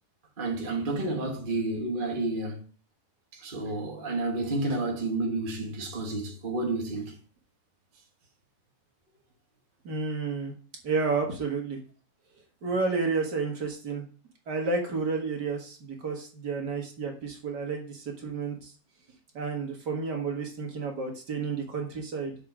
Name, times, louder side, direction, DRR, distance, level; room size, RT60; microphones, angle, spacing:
voice 1, 0.4-2.6 3.3-7.1, right 2 dB, 30° right, 1.2 m, -30 dB
voice 2, 9.8-10.5 10.8-11.8 12.6-14.0 14.5-18.7 19.3-22.4, right 4 dB, 55° right, 2.1 m, -31 dB
6.8 x 5.0 x 5.3 m
omnidirectional pair, 2.3 m